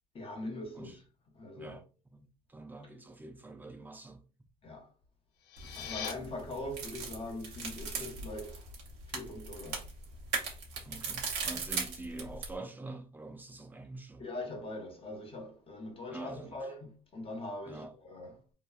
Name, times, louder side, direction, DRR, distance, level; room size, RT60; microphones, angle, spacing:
voice 1, 0.1-1.0 1.3-1.8 4.6-4.9 5.8-8.6 9.1-9.8 14.2-18.4, left 1 dB, 35° left, 0.8 m, -42 dB
voice 2, 2.1-4.2 10.8-14.2 16.1-16.6 17.7-17.9, right 2 dB, 10° right, 0.4 m, -45 dB
sound 1, 5.3-6.1, left 9 dB, 85° left, 0.4 m, -40 dB
sound 2, 5.6-12.6, right 5 dB, 85° right, 0.8 m, -39 dB
2.8 x 2.2 x 2.3 m
cardioid pair, 110°, 17 cm